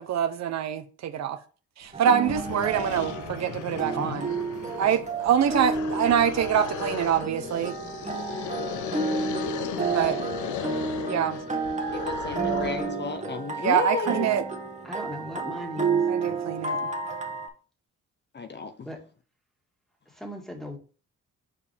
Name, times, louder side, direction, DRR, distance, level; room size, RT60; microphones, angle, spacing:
voice 1, 0.0-1.4 1.8-4.3 4.8-7.7 9.9-10.2 11.1-11.4 13.6-14.4 16.1-16.9, right 9 dB, 60° right, 0.8 m, -25 dB
sound 1, 1.9-2.0 2.2-13.0, left 9 dB, 75° left, 0.6 m, -36 dB
sound 2, 1.9-17.5, right 4 dB, 25° right, 1.5 m, -31 dB
voice 2, 11.9-14.3 18.3-18.7, left 5 dB, 35° left, 0.7 m, -32 dB
voice 3, 14.8-16.4 18.8-19.0 20.1-20.8, left 1 dB, ahead, 2.0 m, -39 dB
6.9 x 4.9 x 3.4 m
cardioid pair, 90°, 30 cm